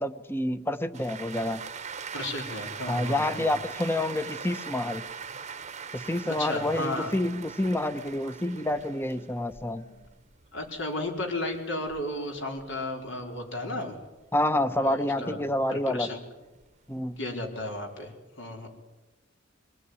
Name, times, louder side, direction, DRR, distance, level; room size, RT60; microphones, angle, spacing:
voice 1, 0.0-1.6 2.9-5.0 5.9-9.8 14.3-16.1 16.9-17.2, left 1 dB, 10° left, 11 dB, 1.1 m, -28 dB
sound 1, 0.9-13.4 13.8-15.9 16.4-18.1, right 6 dB, 35° right, 1.1 m, -41 dB
voice 2, 2.1-3.5 6.3-7.1 9.8-10.1 10.5-14.0 14.8-15.4 15.7-16.2 17.2-18.7, left 1 dB, 65° left, 2 dB, 4.8 m, -34 dB
23.5 x 19.5 x 9.8 m, 1.1 s
head